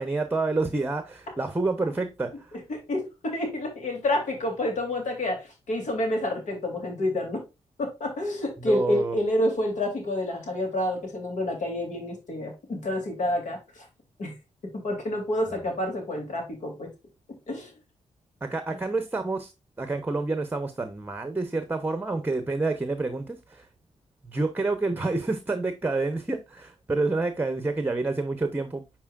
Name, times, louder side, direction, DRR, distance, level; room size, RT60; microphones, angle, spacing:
voice 1, 0.0-2.5 8.6-9.2 18.4-19.5 19.8-23.7 24.2-28.8, right 3 dB, 15° right, 0.8 m, -28 dB
voice 2, 2.7-7.4 7.8-13.8 14.2-14.3 14.8-16.9 17.5-17.7, left 1 dB, 75° left, 3.2 m, -28 dB
9.4 x 4.5 x 2.4 m
wide cardioid pair, 125°, 13 cm